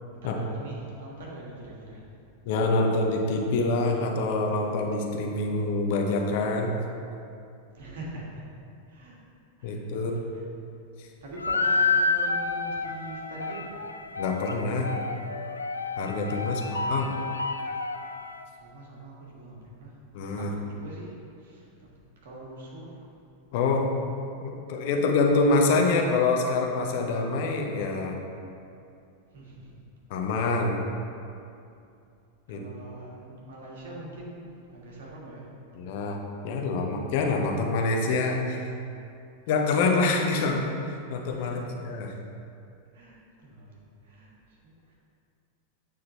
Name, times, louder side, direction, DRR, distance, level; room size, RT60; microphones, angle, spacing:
voice 1, 0.1-2.1 7.7-8.4 8.9-9.2 9.6-10.4 11.0-13.8 16.4-17.1 18.5-20.0 20.4-21.9 22.2-23.1 29.3-29.8 30.3-30.5 32.5-35.5 41.3-41.7 42.9-44.9, right 1 dB, 60° right, -4 dB, 1.6 m, -43 dB
voice 2, 2.5-6.7 9.6-10.1 11.0-11.1 14.2-14.9 16.0-17.1 20.1-20.5 23.5-23.9 24.4-28.2 30.1-30.8 32.5-32.6 35.8-38.7 39.5-42.1, left 3 dB, 50° left, 1 dB, 0.8 m, -26 dB
sound 1, 11.4-18.4, left 3 dB, 80° left, 0.3 m, -29 dB
8.7 x 3.7 x 4.2 m, 2.5 s
figure-of-eight pair, 90°, 0 cm